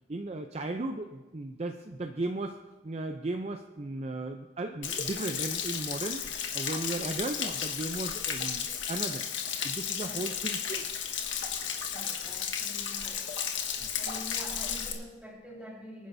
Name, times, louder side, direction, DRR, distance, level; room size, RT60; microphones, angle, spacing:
voice 1, 0.1-2.6 2.8-9.2 9.6-10.9 13.8-13.9, right 2 dB, 35° right, 5 dB, 0.5 m, -36 dB
Stream / Splash splatter / Trickle dribble, 4.8-14.9, left 8 dB, 75° left, 1.5 m, -34 dB
voice 2, 11.9-13.3 14.0-16.1, equal, 5° right, -3 dB, 3.8 m, -46 dB
25.0 x 10.0 x 2.7 m, 1.3 s
head